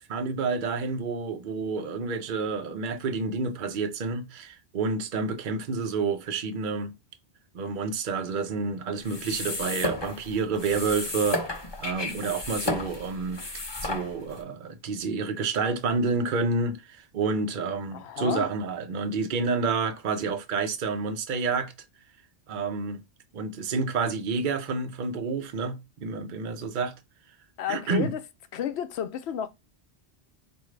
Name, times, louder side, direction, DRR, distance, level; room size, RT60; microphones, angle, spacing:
voice 1, 0.1-6.9 7.5-13.4 13.8-21.7 22.5-23.0 23.3-26.9 27.7-28.1, right 4 dB, 55° right, 0.8 m, -29 dB
sound 1, 9.0-14.4, left 2 dB, 25° left, 0.7 m, -33 dB
voice 2, 17.9-18.5 27.6-28.2 28.5-29.5, left 9 dB, 75° left, 0.9 m, -31 dB
4.7 x 2.6 x 3.1 m
omnidirectional pair, 1.1 m